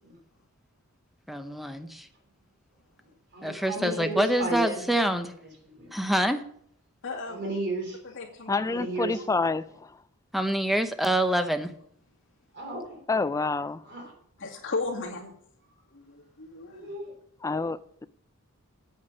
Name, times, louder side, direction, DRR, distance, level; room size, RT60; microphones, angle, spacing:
voice 1, 1.3-2.1 3.4-5.3 5.9-6.4 10.3-11.7, right 1 dB, ahead, 0.8 m, -26 dB
voice 2, 3.3-4.8 5.7-5.9 7.3-8.0 8.7-9.2 12.5-13.0 13.9-14.1 16.7-17.1, right 1 dB, 50° right, 3.1 m, -33 dB
voice 3, 7.0-7.4 8.0-8.6 14.4-15.3 15.9-16.9, left 3 dB, 60° left, 2.2 m, -35 dB
voice 4, 8.5-10.0 13.1-13.8 17.4-18.1, left 3 dB, 15° left, 0.3 m, -28 dB
8.7 x 8.6 x 5.3 m
head